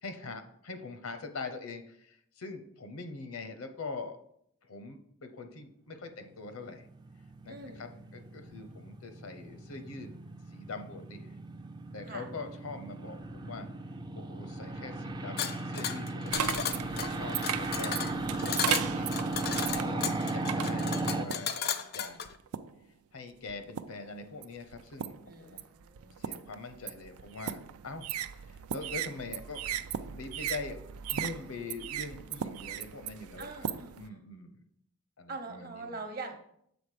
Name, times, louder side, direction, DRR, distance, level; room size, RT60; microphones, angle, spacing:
voice 1, 0.0-4.2 4.6-6.9 7.4-10.1 10.5-11.3 11.9-13.7 14.2-19.1 19.7-21.6 21.9-22.2 23.1-25.6 26.2-28.1 28.3-29.6 29.9-30.8 31.1-33.7 34.0-34.6 35.2-36.0, left 3 dB, 80° left, 8 dB, 0.8 m, -43 dB
sound 1, 6.6-21.3, right 2 dB, 20° right, 0.3 m, -36 dB
voice 2, 7.5-8.0 12.0-12.3 25.3-26.3 33.4-34.2 35.3-36.5, right 3 dB, 45° right, 5 dB, 0.9 m, -44 dB
sound 2, 15.4-22.3, left 7 dB, 45° left, 0.4 m, -35 dB
sound 3, 16.3-21.6 22.2-22.8 23.5-24.1 24.4-34.1, right 9 dB, 90° right, 0.4 m, -37 dB
7.1 x 4.0 x 4.9 m, 0.71 s
head